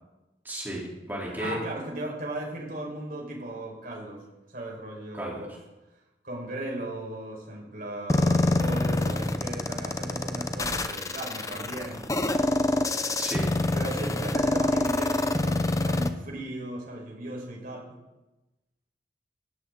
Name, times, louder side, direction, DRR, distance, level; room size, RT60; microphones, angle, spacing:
voice 1, 0.4-1.6 5.1-5.4 13.2-13.7, equal, 10° right, -4 dB, 3.8 m, -34 dB
voice 2, 1.4-5.5 6.2-12.2 13.7-17.9, right 1 dB, 50° right, -2 dB, 5.2 m, -37 dB
sound 1, 8.1-16.1, left 2 dB, 20° left, 0.7 m, -26 dB
18.0 x 14.5 x 4.0 m, 1.0 s
head